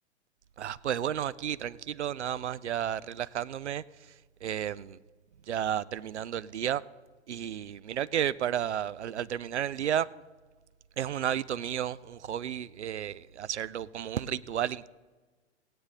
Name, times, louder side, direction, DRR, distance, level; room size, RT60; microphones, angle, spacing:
voice 1, 0.6-3.8 4.4-5.0 5.5-6.8 7.3-10.1 11.0-14.9, right 10 dB, 70° right, 0.5 m, -32 dB
17.0 x 9.5 x 3.8 m
figure-of-eight pair, 110°, 36 cm